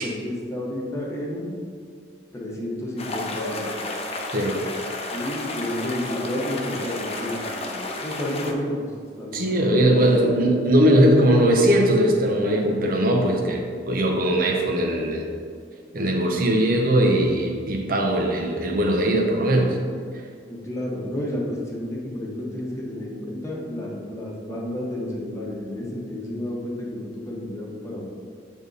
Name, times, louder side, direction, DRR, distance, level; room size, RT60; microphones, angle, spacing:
voice 1, 0.0-1.5 2.3-3.8 5.1-8.9 9.2-11.5 20.5-28.1, left 1 dB, 15° left, -3 dB, 1.1 m, -31 dB
sound 1, 3.0-8.5, left 2 dB, 35° left, 0.6 m, -32 dB
voice 2, 9.3-15.2 15.9-19.8, right 1 dB, 55° right, 1 dB, 0.9 m, -20 dB
7.9 x 3.6 x 3.9 m, 2.1 s
head